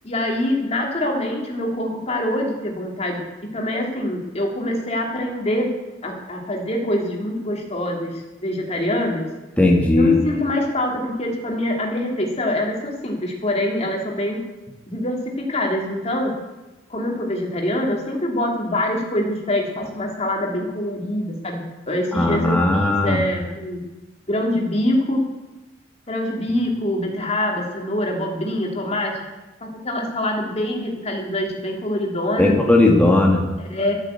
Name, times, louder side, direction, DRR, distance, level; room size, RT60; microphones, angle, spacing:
voice 1, 0.0-3.2 3.5-5.7 6.0-9.3 9.9-14.4 14.9-15.2 15.5-16.3 16.9-23.8 24.3-25.2 26.1-29.1 29.6-32.6 33.6-33.9, left 1 dB, 35° left, 0 dB, 2.7 m, -24 dB
voice 2, 9.6-10.2 22.2-23.2 32.4-33.4, left 2 dB, 5° left, -1 dB, 1.7 m, -16 dB
13.0 x 8.9 x 8.1 m, 1.1 s
head